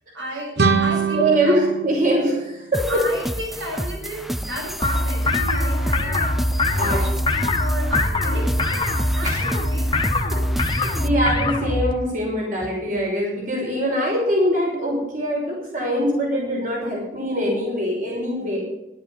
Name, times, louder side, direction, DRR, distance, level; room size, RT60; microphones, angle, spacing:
voice 1, 0.1-1.6 2.9-6.3 6.7-10.0, equal, 90° right, -1 dB, 7.0 m, -33 dB
sound 1, 0.6-3.3, right 5 dB, 70° right, 1.1 m, -24 dB
voice 2, 1.1-3.0 6.8-7.0 9.2-9.4 10.3-18.6, equal, 45° right, -2 dB, 5.5 m, -23 dB
sound 2, 2.7-11.1, equal, ahead, 0.4 m, -31 dB
sound 3, 4.8-11.9, left 1 dB, 25° left, 1.3 m, -22 dB
16.0 x 11.5 x 5.6 m, 0.92 s
head